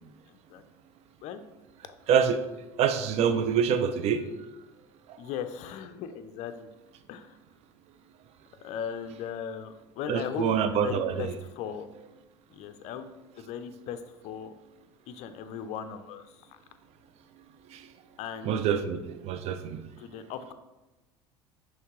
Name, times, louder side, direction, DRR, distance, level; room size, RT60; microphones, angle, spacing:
voice 1, 0.3-0.6 1.2-1.4 5.2-6.7 7.1-7.4 8.6-11.9 12.5-13.1 13.4-14.5 15.1-16.5 18.2-18.6 20.0-20.5, left 8 dB, 55° left, 9 dB, 0.4 m, -38 dB
voice 2, 2.8-4.2 10.1-11.3 17.7-17.8 18.4-19.8, right 7 dB, 50° right, 10 dB, 0.4 m, -26 dB
5.6 x 3.1 x 3.0 m, 1.1 s
hypercardioid pair, 75°, 14 cm